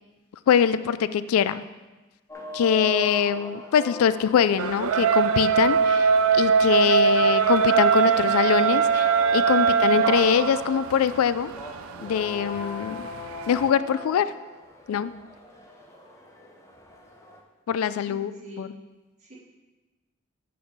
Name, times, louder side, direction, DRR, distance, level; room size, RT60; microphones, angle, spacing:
voice 1, 0.5-1.7 2.5-11.5 12.0-13.1 13.5-14.3 14.9-15.1 17.7-18.3 18.6-18.7, left 8 dB, 90° left, 15 dB, 0.3 m, -23 dB
sound 1, 2.3-17.4, left 1 dB, 15° left, 0.8 m, -40 dB
sound 2, 4.6-13.7, right 6 dB, 80° right, 0.4 m, -22 dB
voice 2, 18.0-18.7 19.2-19.3, equal, 35° right, -4 dB, 1.9 m, -43 dB
7.2 x 4.8 x 5.3 m, 1.2 s
head